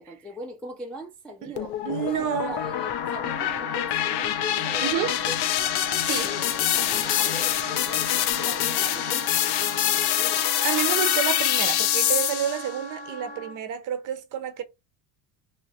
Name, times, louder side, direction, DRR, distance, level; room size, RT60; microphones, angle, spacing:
voice 1, 0.0-5.5 6.2-10.4, equal, 5° left, 0.3 m, -40 dB
voice 2, 1.4-2.6 4.8-5.2 6.1-6.3 10.6-14.6, right 10 dB, 45° right, 0.6 m, -29 dB
sound 1, 1.6-12.7, left 12 dB, 60° left, 0.5 m, -25 dB
Wind instrument woodwind instrument, 2.3-13.6, right 1 dB, 25° left, 0.8 m, -38 dB
2.8 x 2.4 x 2.6 m
cardioid pair, 135°, 44 cm